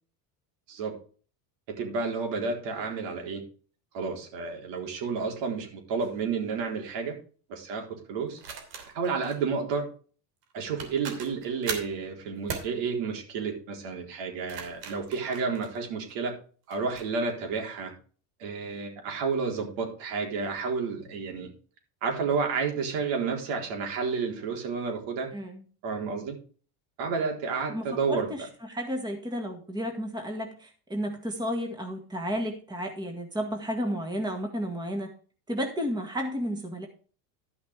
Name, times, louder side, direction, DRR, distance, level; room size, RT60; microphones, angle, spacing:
voice 1, 1.7-3.4 3.9-7.2 7.5-8.4 8.9-9.9 10.5-16.3 16.7-17.9 18.4-21.5 22.0-25.3 25.8-26.4 27.0-28.3, right 5 dB, 65° right, 2 dB, 4.0 m, -31 dB
sound 1, 6.0-6.2 8.4-9.4 10.4-10.5 10.8-12.0 12.5-12.7 14.3-16.1 16.7-17.1, right 6 dB, 90° right, 3.1 m, -39 dB
voice 2, 27.7-28.4 28.7-35.1 35.5-36.9, equal, 10° right, 3 dB, 1.9 m, -32 dB
13.0 x 5.9 x 4.8 m, 0.40 s
supercardioid pair, 115°, 48 cm